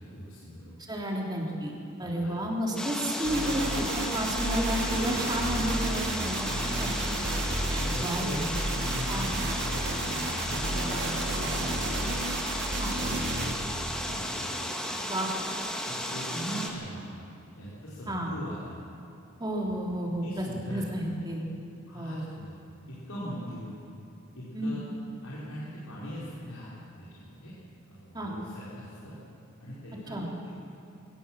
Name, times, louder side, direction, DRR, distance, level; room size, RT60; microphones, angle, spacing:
voice 1, 0.0-0.7 2.0-2.3 7.8-9.4 9.8-12.1 12.9-13.5 13.8-14.5 15.9-17.1 17.6-18.7 20.1-20.8 21.9-22.5 22.9-23.8 24.3-24.8 25.2-26.7 27.0-27.5 27.9-29.1 29.6-30.3, equal, 85° left, -8 dB, 4.7 m, -40 dB
voice 2, 0.9-1.7 2.0-7.2 7.7-8.3 9.1-9.3 12.8-12.9 15.0-15.3 16.3-16.5 18.1-18.3 19.4-21.5 21.9-22.3 24.5-24.8 28.1-28.3 30.1-30.3, equal, 20° right, -1 dB, 3.3 m, -32 dB
sound 1, 2.8-16.7, equal, 5° left, 1.8 m, -34 dB
sound 2, 3.2-13.5, right 1 dB, 55° right, 2.9 m, -32 dB
22.5 x 18.5 x 7.5 m, 2.9 s
head